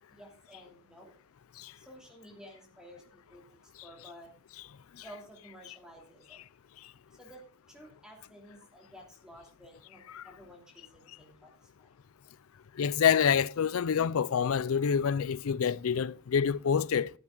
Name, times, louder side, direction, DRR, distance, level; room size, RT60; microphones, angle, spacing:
voice 1, 0.1-1.1 1.7-4.3 5.0-6.4 7.1-11.9, equal, 5° right, 2.8 m, -53 dB
voice 2, 12.8-17.1, left 7 dB, 70° left, 0.4 m, -27 dB
13.5 x 9.8 x 3.8 m
head